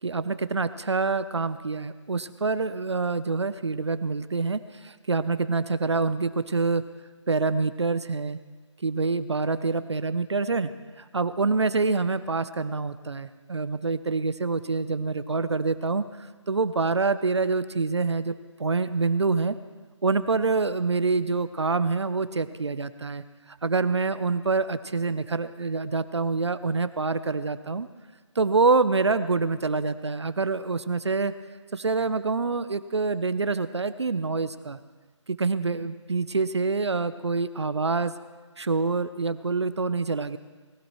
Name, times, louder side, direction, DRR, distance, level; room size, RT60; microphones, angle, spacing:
voice 1, 0.0-6.8 7.3-8.4 8.8-10.7 11.0-18.3 18.6-19.6 20.0-27.9 28.4-31.3 31.7-34.8 35.3-38.1 38.6-40.4, right 4 dB, 60° right, 13 dB, 0.7 m, -26 dB
19.0 x 16.5 x 3.2 m, 1.4 s
figure-of-eight pair, 180°, 16 cm